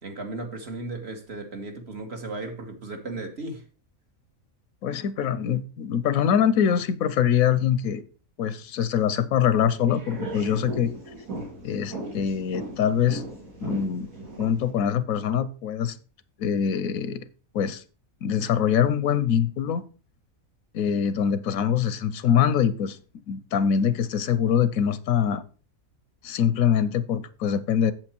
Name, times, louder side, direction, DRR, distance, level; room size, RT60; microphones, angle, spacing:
voice 1, 0.0-3.6, right 2 dB, 50° right, 1.6 m, -35 dB
voice 2, 4.8-8.0 8.4-10.9 11.6-13.2 13.6-14.1 14.4-16.0 16.4-17.2 17.5-17.8 18.2-19.8 20.7-23.0 23.3-25.4 26.2-27.9, left 8 dB, 80° left, 1.1 m, -24 dB
sound 1, 9.5-14.7, right 2 dB, 75° right, 3.5 m, -37 dB
7.8 x 7.6 x 4.4 m
omnidirectional pair, 1.5 m